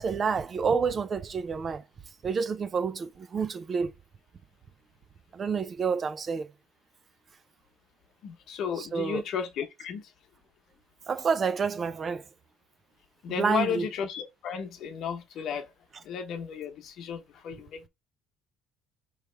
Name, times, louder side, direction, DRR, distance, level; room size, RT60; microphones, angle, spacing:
voice 1, 0.0-1.8 2.2-3.9 5.3-6.5 8.8-9.2 11.1-12.2 13.4-13.9, right 5 dB, 30° right, 0.4 m, -28 dB
voice 2, 8.2-10.1 13.2-15.7 16.0-17.9, left 7 dB, 55° left, 1.0 m, -34 dB
4.8 x 3.1 x 3.3 m
cardioid pair, 130°, 0 cm